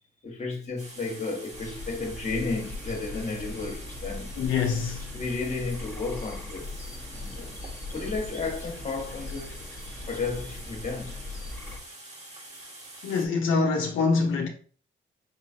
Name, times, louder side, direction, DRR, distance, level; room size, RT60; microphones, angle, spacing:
voice 1, 0.2-4.3 5.1-6.7 7.1-7.6 7.9-11.2, left 3 dB, 35° left, 1.4 m, -33 dB
sound 1, 0.8-13.3, right 2 dB, 35° right, 1.4 m, -46 dB
sound 2, 1.5-11.8, left 2 dB, 15° left, 1.1 m, -40 dB
voice 2, 4.4-5.1 13.0-14.5, left 4 dB, 80° left, 0.8 m, -25 dB
5.2 x 3.1 x 2.8 m
cardioid pair, 90°, 20 cm